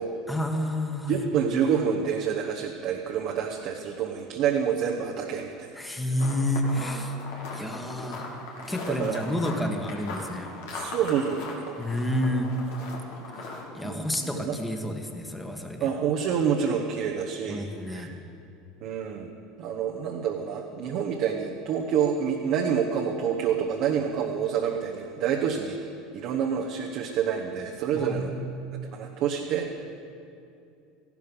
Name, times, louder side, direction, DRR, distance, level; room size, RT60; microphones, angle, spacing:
voice 1, 0.3-1.3 5.7-7.2 7.5-8.2 8.7-10.5 11.8-12.6 13.3-13.4 13.7-15.9 17.5-18.1 27.9-28.6, left 1 dB, 10° left, 4 dB, 1.7 m, -29 dB
voice 2, 1.1-5.7 8.9-9.2 10.7-11.8 13.8-14.0 14.3-14.6 15.8-18.1 18.8-19.3 19.6-25.8 26.1-28.3 28.8-29.7, right 7 dB, 60° right, 1 dB, 1.1 m, -28 dB
sound 1, 6.2-13.6, left 3 dB, 70° left, 2.5 m, -39 dB
15.0 x 12.0 x 5.5 m, 2.6 s
hypercardioid pair, 85°, 0 cm